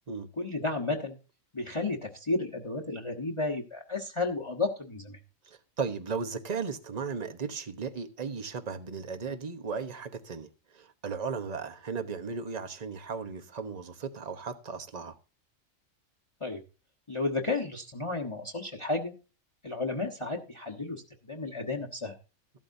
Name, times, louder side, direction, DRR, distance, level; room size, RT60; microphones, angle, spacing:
voice 1, 0.4-1.2 1.5-5.2 16.4-16.6 17.1-19.1 19.6-21.0 21.3-22.1, left 3 dB, 25° left, 1.2 m, -32 dB
voice 2, 5.4-15.2, right 5 dB, 30° right, 1.0 m, -36 dB
14.5 x 12.0 x 2.7 m
omnidirectional pair, 1.4 m